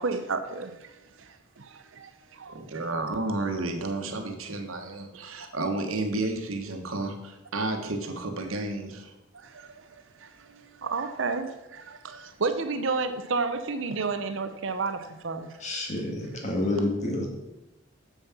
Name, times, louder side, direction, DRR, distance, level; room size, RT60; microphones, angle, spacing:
voice 1, 0.0-2.8 9.3-9.9 10.2-15.5, right 4 dB, 60° right, 9 dB, 0.7 m, -32 dB
voice 2, 2.5-9.1, right 2 dB, 75° right, 5 dB, 1.3 m, -31 dB
voice 3, 15.6-17.3, left 2 dB, 35° left, 0 dB, 2.1 m, -28 dB
7.2 x 7.0 x 5.9 m, 0.97 s
head